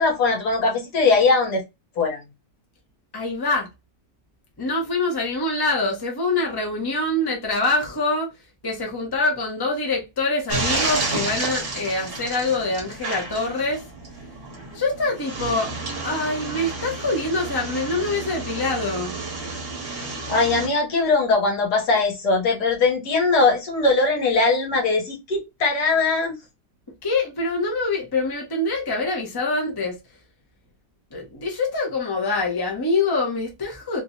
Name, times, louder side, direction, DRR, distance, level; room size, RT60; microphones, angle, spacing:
voice 1, 0.0-1.6 2.0-2.2 20.3-26.4, left 3 dB, 65° left, 1.8 m, -20 dB
voice 2, 3.1-3.7 4.6-8.3 8.6-13.8 14.7-15.7 16.0-19.2 27.0-30.0 31.1-34.0, left 2 dB, 15° left, 0.9 m, -25 dB
sound 1, 10.5-20.7, right 3 dB, 40° right, 1.3 m, -31 dB
3.4 x 2.9 x 2.8 m
omnidirectional pair, 1.9 m